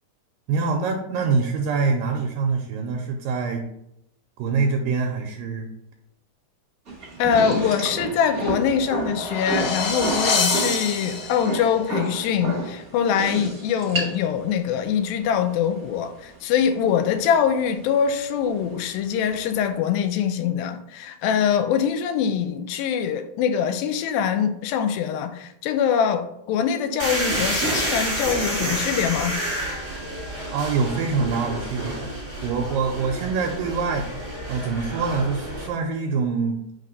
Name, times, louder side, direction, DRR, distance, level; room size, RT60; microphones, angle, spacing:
voice 1, 0.5-3.6 4.4-5.7 30.5-32.1 32.4-36.6, right 4 dB, 80° right, 2.2 m, -25 dB
sound 1, 6.9-19.7, right 3 dB, 45° right, 1.1 m, -32 dB
voice 2, 7.2-29.4, left 8 dB, 80° left, 2.3 m, -23 dB
sound 2, 8.7-11.7, left 4 dB, 65° left, 2.1 m, -26 dB
sound 3, 27.0-35.7, right 1 dB, 25° right, 1.4 m, -29 dB
4.9 x 4.2 x 5.2 m
omnidirectional pair, 4.3 m